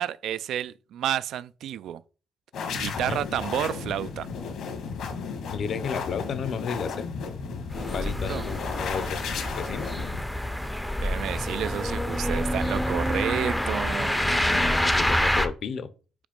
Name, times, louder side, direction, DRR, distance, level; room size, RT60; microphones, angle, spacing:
voice 1, 0.0-2.0 2.7-4.3 8.3-8.4 11.0-14.4, right 11 dB, 70° right, 0.3 m, -30 dB
sound 1, 2.5-10.2, left 5 dB, 65° left, 1.4 m, -34 dB
voice 2, 5.5-7.1 7.9-9.2 9.6-9.9 14.3-15.9, left 6 dB, 45° left, 0.7 m, -32 dB
sound 2, 7.7-15.5, equal, 5° left, 0.5 m, -27 dB
5.1 x 5.0 x 5.2 m
cardioid pair, 165°, 0 cm